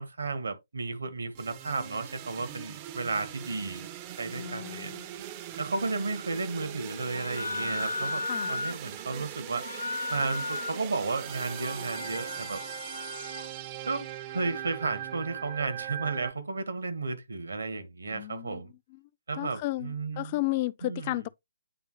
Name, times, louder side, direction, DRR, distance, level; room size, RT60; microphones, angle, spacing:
voice 1, 0.0-3.9 4.2-4.9 5.6-9.6 10.1-12.6 13.9-18.7 19.3-20.4 20.8-21.1, right 3 dB, 65° right, 1.4 m, -33 dB
sound 1, 1.3-16.3, right 12 dB, 25° right, 0.5 m, -41 dB
voice 2, 4.3-5.1 8.3-8.5 18.0-18.6 18.9-19.0 19.3-21.3, left 18 dB, 30° left, 0.4 m, -33 dB
sound 2, 7.1-8.8 9.5-10.8 11.2-13.5, left 3 dB, 85° left, 0.9 m, -35 dB
9.5 x 3.6 x 3.1 m
figure-of-eight pair, 135°, 0 cm